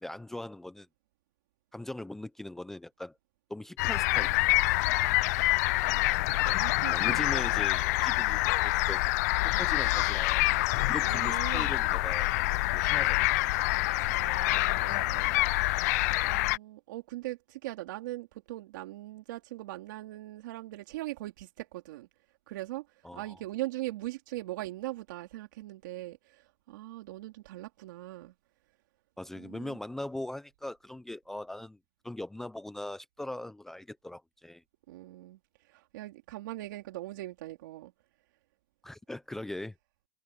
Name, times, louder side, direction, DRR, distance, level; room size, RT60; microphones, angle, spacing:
voice 1, 0.0-0.9 1.7-3.1 3.5-4.4 6.9-9.0 9.4-10.4 10.9-13.4 23.0-23.4 29.2-31.8 32.0-34.6 38.8-39.7, left 1 dB, 5° left, 0.5 m, -40 dB
sound 1, 3.8-16.6, left 21 dB, 55° left, 0.4 m, -26 dB
voice 2, 5.8-7.7 11.0-11.7 14.0-15.4 16.2-22.1 22.5-28.3 29.3-29.8 34.9-37.9, right 17 dB, 75° right, 3.2 m, -41 dB
supercardioid pair, 170°, 10 cm